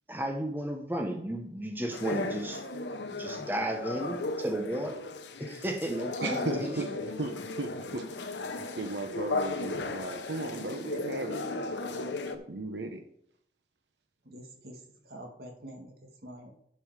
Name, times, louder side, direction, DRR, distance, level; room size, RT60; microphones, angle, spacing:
voice 1, 0.1-2.6 3.1-5.0 5.4-6.8, right 1 dB, 10° right, 0.9 m, -33 dB
sound 1, 1.9-12.4, left 3 dB, 90° left, 0.9 m, -36 dB
voice 2, 6.2-6.9 7.2-8.1 8.8-12.1 12.3-13.0, right 2 dB, 85° right, 0.9 m, -36 dB
voice 3, 14.2-16.5, right 1 dB, 60° right, 2.0 m, -47 dB
11.0 x 5.5 x 4.8 m
head